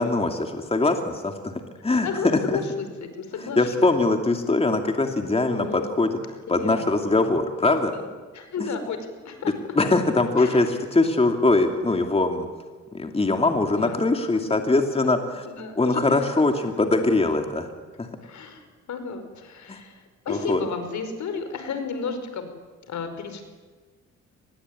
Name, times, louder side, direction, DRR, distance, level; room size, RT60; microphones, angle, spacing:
voice 1, 0.0-2.6 3.6-7.9 8.6-8.7 9.7-12.5 12.9-15.4 15.8-17.7 18.0-18.1 19.7-19.8 20.3-20.6, left 2 dB, 20° left, 4 dB, 2.6 m, -22 dB
voice 2, 1.9-3.7 5.5-5.9 6.6-7.0 7.9-9.0 9.2-9.5 10.4-10.7 13.7-13.9 14.3-14.6 15.0-15.1 15.4-16.2 18.2-22.5 22.9-23.4, left 5 dB, 70° left, 8 dB, 5.1 m, -33 dB
24.5 x 21.0 x 9.8 m, 1.4 s
cardioid pair, 90°, 30 cm